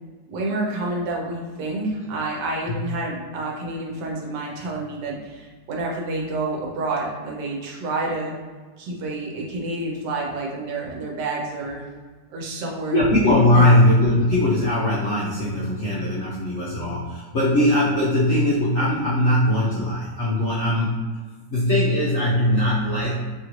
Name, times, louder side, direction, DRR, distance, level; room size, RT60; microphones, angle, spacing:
voice 1, 0.3-8.3 8.8-11.8 12.3-13.0 13.6-13.7, right 2 dB, 80° right, -1 dB, 1.3 m, -29 dB
voice 2, 12.9-21.0 21.5-23.2, left 1 dB, 65° left, -8 dB, 0.7 m, -20 dB
3.2 x 2.5 x 2.9 m, 1.4 s
omnidirectional pair, 1.9 m